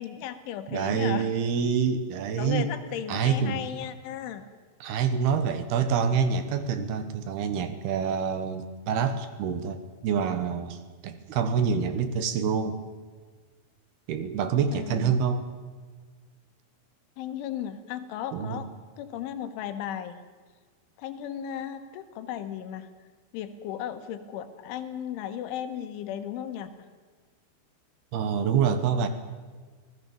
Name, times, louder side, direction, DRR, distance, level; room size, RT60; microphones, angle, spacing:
voice 1, 0.0-1.3 2.4-4.5 14.7-15.2 17.2-18.7 19.0-20.2 21.0-22.9 23.3-26.7, left 10 dB, 80° left, 9 dB, 3.8 m, -35 dB
voice 2, 0.7-2.7 3.1-3.7 4.8-12.8 14.1-15.4 18.3-18.6 28.1-29.1, right 6 dB, 65° right, 10 dB, 2.8 m, -26 dB
25.0 x 18.5 x 7.1 m, 1.5 s
omnidirectional pair, 5.6 m